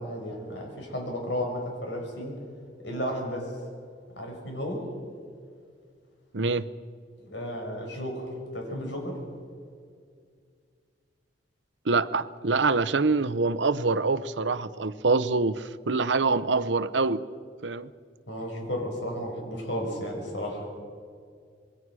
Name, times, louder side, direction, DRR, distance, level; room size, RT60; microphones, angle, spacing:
voice 1, 0.0-2.4 2.8-3.6 4.2-4.9 7.2-9.2 18.3-20.7, equal, 85° left, 2 dB, 6.2 m, -33 dB
voice 2, 6.3-6.7 11.8-17.2 17.6-17.9, right 3 dB, 85° right, 15 dB, 0.8 m, -25 dB
26.5 x 22.0 x 6.3 m, 2.1 s
head